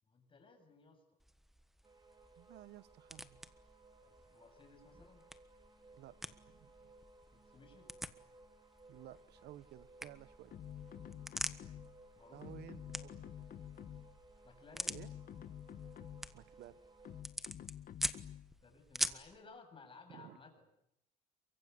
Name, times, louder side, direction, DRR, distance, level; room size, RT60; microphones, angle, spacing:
voice 1, 0.0-1.0 4.0-5.2 7.3-7.9 12.2-12.6 14.4-15.0 18.6-20.5, left 4 dB, 30° left, 5 dB, 8.0 m, -58 dB
sound 1, 1.2-19.4, equal, ahead, 1.4 m, -47 dB
sound 2, 1.8-17.2, right 2 dB, 25° right, 3.6 m, -62 dB
voice 2, 2.4-3.4 5.9-6.2 6.4-6.9 8.9-10.5 12.3-13.1 14.9-15.1 16.3-16.8 20.1-20.4, right 13 dB, 75° right, 16 dB, 1.1 m, -54 dB
sound 3, 10.5-12.0 12.4-14.2 14.7-16.4 17.0-18.6, left 10 dB, 55° left, 1.5 m, -50 dB
28.5 x 24.0 x 8.4 m, 0.80 s
cardioid pair, 110°, 17 cm